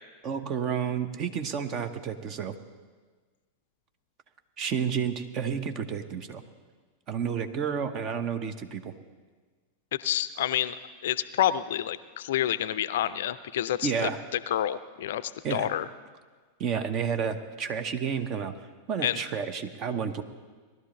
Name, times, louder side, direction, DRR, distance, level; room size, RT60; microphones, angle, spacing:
voice 1, 0.2-2.5 4.6-6.4 7.1-8.9 13.8-14.2 15.4-15.7 16.6-18.5 18.9-20.2, right 7 dB, 35° right, 10 dB, 1.0 m, -30 dB
voice 2, 9.9-10.8 11.0-13.9 14.3-15.9 19.0-19.2, left 11 dB, 55° left, 15 dB, 0.5 m, -28 dB
19.0 x 12.0 x 3.9 m, 1.4 s
figure-of-eight pair, 90°, 0 cm